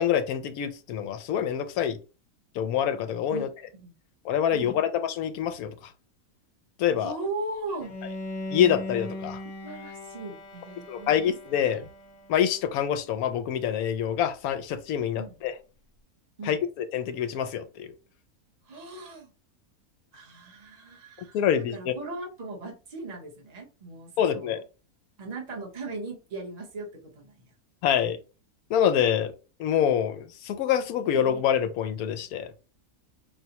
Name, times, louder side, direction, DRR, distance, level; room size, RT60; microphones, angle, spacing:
voice 1, 0.0-2.0 2.5-3.5 4.2-5.9 6.8-7.2 8.5-9.4 10.9-11.9 12.3-15.5 16.4-17.9 21.3-21.9 24.2-24.6 27.8-28.2 28.7-29.3 29.6-32.5, left 9 dB, 80° left, 1.0 m, -26 dB
voice 2, 3.3-3.9 4.5-4.8 7.0-8.0 9.6-11.3 15.2-15.4 16.4-16.6 18.7-19.3 20.1-24.5 25.2-26.9 27.1-27.4, right 2 dB, 30° right, 0.9 m, -38 dB
Bowed string instrument, 7.8-12.8, left 2 dB, 55° left, 1.2 m, -39 dB
5.0 x 2.2 x 2.8 m
omnidirectional pair, 1.5 m